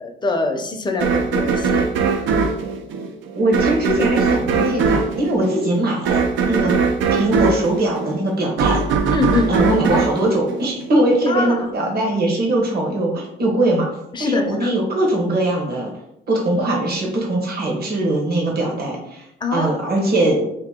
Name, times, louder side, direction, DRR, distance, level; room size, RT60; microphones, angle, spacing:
voice 1, 0.0-1.9 9.1-9.5 11.3-11.6 14.1-14.7 19.4-19.7, left 3 dB, 20° left, 3 dB, 0.6 m, -23 dB
sound 1, 1.0-11.2, right 5 dB, 75° right, 0.5 m, -20 dB
voice 2, 3.3-6.7 7.1-8.8 9.5-13.9 14.2-15.9 16.3-19.2 19.5-20.4, right 1 dB, 50° right, -1 dB, 1.2 m, -21 dB
2.9 x 2.7 x 3.5 m, 0.79 s
cardioid pair, 90°, 20 cm